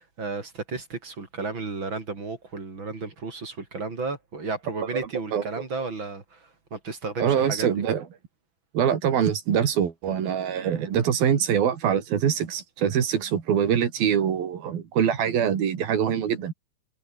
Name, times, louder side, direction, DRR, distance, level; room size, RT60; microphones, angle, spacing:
voice 1, 0.0-7.7, right 3 dB, 30° right, 4.2 m, -33 dB
voice 2, 7.2-8.1 8.7-16.5, right 8 dB, 65° right, 4.4 m, -24 dB
omnidirectional pair, 4.6 m